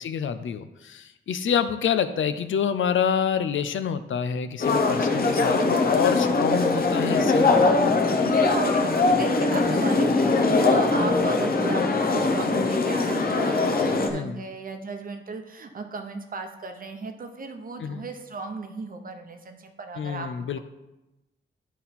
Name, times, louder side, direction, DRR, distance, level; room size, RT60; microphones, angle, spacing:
voice 1, 0.0-7.5 9.1-9.2 14.1-14.4 17.8-18.0 20.0-20.6, left 7 dB, 80° left, 11 dB, 0.5 m, -27 dB
sound 1, 4.6-14.1, left 3 dB, 50° left, 0.8 m, -22 dB
voice 2, 8.2-20.6, right 4 dB, 45° right, 6 dB, 0.8 m, -35 dB
10.5 x 4.1 x 4.2 m, 0.99 s
wide cardioid pair, 165°, 20 cm